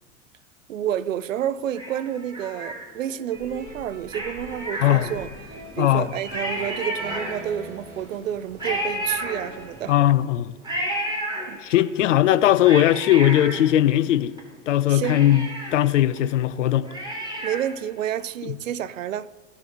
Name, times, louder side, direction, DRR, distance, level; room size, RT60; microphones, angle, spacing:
voice 1, 0.7-10.0 11.5-11.6 14.9-15.2 17.4-19.3, right 10 dB, 75° right, 0.5 m, -29 dB
Cat, 1.7-3.2 4.1-5.5 5.9-6.0 6.2-7.7 8.6-9.9 10.6-11.9 12.4-14.4 14.7-14.8 15.1-17.8 18.2-18.3, right 1 dB, 10° right, 3.4 m, -32 dB
sound 1, 3.3-9.9, equal, 30° right, 3.2 m, -42 dB
sound 2, 4.5-10.1, right 2 dB, 60° right, 3.7 m, -44 dB
voice 2, 4.8-5.1 5.8-6.1 9.9-10.5 11.6-14.3 14.7-15.5 15.7-16.9 18.4-18.5, left 12 dB, 70° left, 0.6 m, -19 dB
16.5 x 6.5 x 2.9 m
figure-of-eight pair, 75°, 39 cm